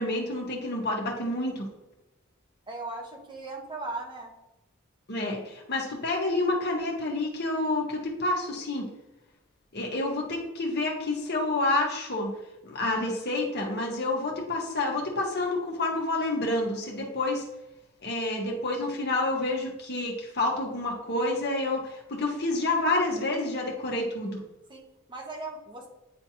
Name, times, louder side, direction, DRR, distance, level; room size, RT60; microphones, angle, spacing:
voice 1, 0.0-1.7 5.1-8.9 9.7-12.3 12.6-17.4 18.0-24.4, left 2 dB, 55° left, 0 dB, 1.5 m, -28 dB
voice 2, 2.7-4.3 24.7-25.9, right 2 dB, 25° right, 0 dB, 1.3 m, -38 dB
9.8 x 3.4 x 2.9 m, 0.99 s
head